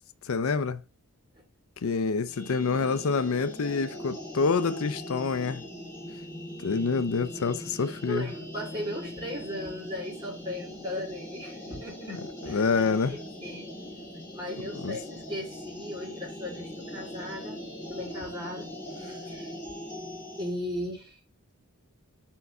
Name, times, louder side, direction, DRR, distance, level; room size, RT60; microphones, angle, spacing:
voice 1, 0.2-0.8 1.8-5.6 6.6-8.3 12.1-13.2 14.8-15.0, left 4 dB, 65° left, 0.5 m, -27 dB
sound 1, 2.3-20.6, left 1 dB, 10° left, 3.1 m, -41 dB
voice 2, 8.1-13.7 14.3-17.6 17.9-19.6 20.4-21.2, left 1 dB, 20° right, 3.1 m, -37 dB
4.5 x 4.5 x 5.4 m
head